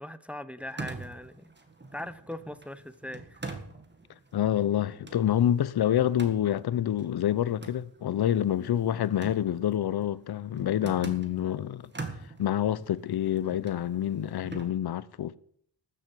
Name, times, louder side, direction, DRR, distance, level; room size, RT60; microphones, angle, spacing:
voice 1, 0.0-1.5 1.9-3.4, left 1 dB, 5° right, 0.6 m, -40 dB
sound 1, 0.6-11.5 11.8-14.7, right 3 dB, 25° right, 1.8 m, -44 dB
voice 2, 4.3-11.9 12.4-15.4, left 11 dB, 55° left, 0.7 m, -27 dB
13.0 x 7.7 x 7.7 m
wide cardioid pair, 120°, 45 cm